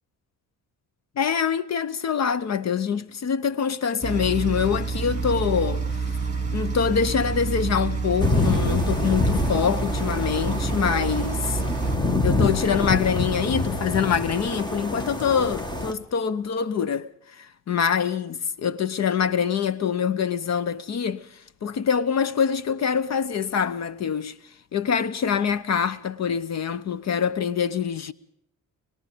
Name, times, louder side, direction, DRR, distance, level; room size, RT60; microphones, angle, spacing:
voice 1, 1.2-6.1 6.5-11.6 12.2-24.4 24.7-28.1, left 7 dB, 50° left, 1.0 m, -25 dB
sound 1, 4.0-12.0, right 4 dB, 20° right, 4.7 m, -28 dB
sound 2, 8.2-15.9, left 2 dB, 15° left, 1.8 m, -26 dB
24.0 x 21.0 x 5.2 m
cardioid pair, 135°, 33 cm